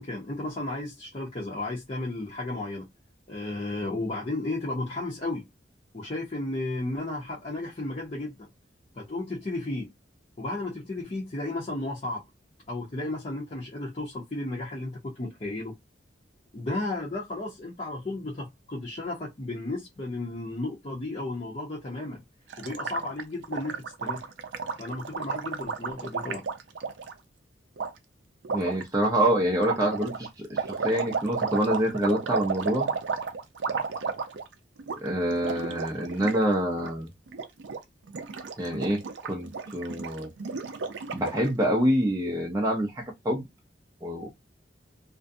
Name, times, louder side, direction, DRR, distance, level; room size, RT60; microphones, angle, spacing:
voice 1, 0.0-2.9 3.3-5.4 5.9-8.5 9.0-9.9 10.4-12.2 12.7-15.7 16.5-22.2 22.6-24.2 24.8-26.4, left 2 dB, 35° left, 0.7 m, -33 dB
Gurgling, 22.5-27.1 27.8-27.9 28.4-28.8 29.6-34.5 34.8-35.0 35.3-36.4 36.7-36.9 37.3-37.8 38.1-41.5, right 5 dB, 75° right, 0.5 m, -33 dB
voice 2, 28.5-32.9 35.0-37.1 38.6-40.3 41.1-43.4 44.0-44.3, equal, 20° right, 0.5 m, -26 dB
2.5 x 2.1 x 2.6 m
head